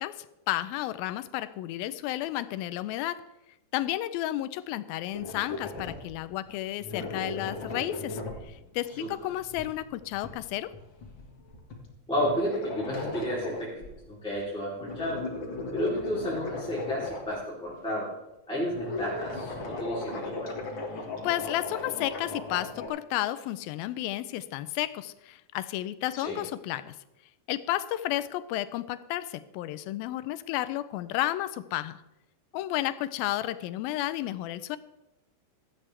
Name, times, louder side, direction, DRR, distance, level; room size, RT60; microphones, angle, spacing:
voice 1, 0.0-3.2 3.7-10.7 21.2-27.0 27.5-32.0 32.5-34.8, left 14 dB, 85° left, 14 dB, 2.4 m, -32 dB
sound 1, 5.1-6.2 6.4-6.5 6.8-13.9 14.3-14.4 14.7-17.8 18.7-22.9, left 3 dB, 45° left, 1.8 m, -37 dB
voice 2, 12.1-15.2 15.7-18.1 18.5-20.5 26.1-26.4, equal, ahead, -8 dB, 2.9 m, -32 dB
16.0 x 12.5 x 3.3 m, 0.95 s
omnidirectional pair, 4.2 m